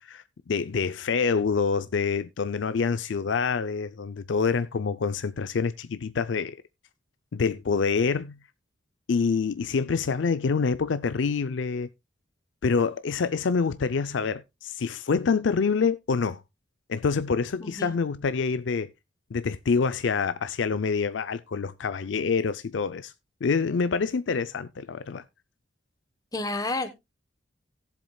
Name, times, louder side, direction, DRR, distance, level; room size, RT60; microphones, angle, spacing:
voice 1, 0.0-6.6 7.3-8.4 9.1-11.9 12.6-16.4 16.9-18.9 19.3-23.1 23.4-25.2, left 5 dB, 70° left, 0.5 m, -26 dB
voice 2, 17.6-17.9 26.3-26.9, left 2 dB, 20° left, 1.1 m, -30 dB
17.5 x 7.5 x 2.2 m
head